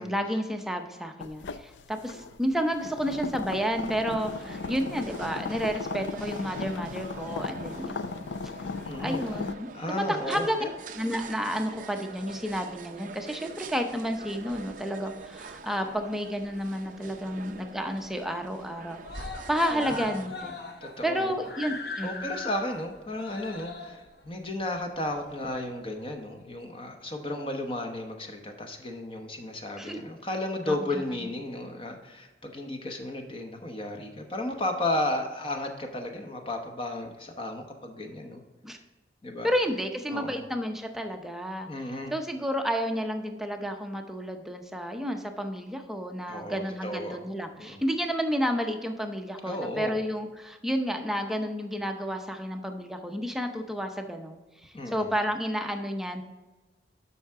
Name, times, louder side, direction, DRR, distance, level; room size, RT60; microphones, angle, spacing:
voice 1, 0.0-8.0 9.0-10.6 11.0-19.0 19.5-20.6 21.0-22.2 29.8-30.0 30.7-31.1 38.6-38.8 39.4-41.7 42.1-56.2, equal, ahead, 4 dB, 0.6 m, -31 dB
sound 1, 1.2-9.5, left 4 dB, 85° left, 0.5 m, -37 dB
sound 2, 4.2-20.3, right 4 dB, 45° right, 0.5 m, -45 dB
voice 2, 8.8-9.2 9.7-10.7 19.7-20.1 20.8-21.3 22.0-38.4 39.2-39.5 40.1-40.4 41.6-42.1 46.3-47.2 47.6-47.8 49.4-50.0 54.7-55.1, left 1 dB, 30° left, 4 dB, 1.0 m, -34 dB
Screaming, 16.3-17.1 17.4-17.5 17.8-17.9 18.2-18.7 19.0-25.8 26.7-26.8, left 4 dB, 65° left, 1.1 m, -40 dB
12.0 x 5.6 x 3.6 m, 1.2 s
head